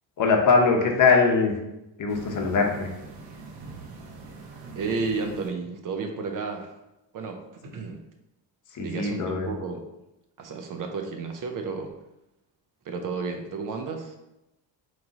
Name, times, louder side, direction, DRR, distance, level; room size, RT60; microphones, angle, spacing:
voice 1, 0.2-1.5 2.0-2.9 8.7-9.5, left 4 dB, 45° left, 2 dB, 0.8 m, -21 dB
sound 1, 2.1-5.5, right 3 dB, 80° right, 0.8 m, -43 dB
voice 2, 4.7-6.7 7.1-8.0 8.8-9.8 10.4-11.9 12.9-14.1, right 4 dB, 50° right, 5 dB, 0.6 m, -32 dB
3.6 x 3.2 x 3.9 m, 0.92 s
cardioid pair, 120°, 44 cm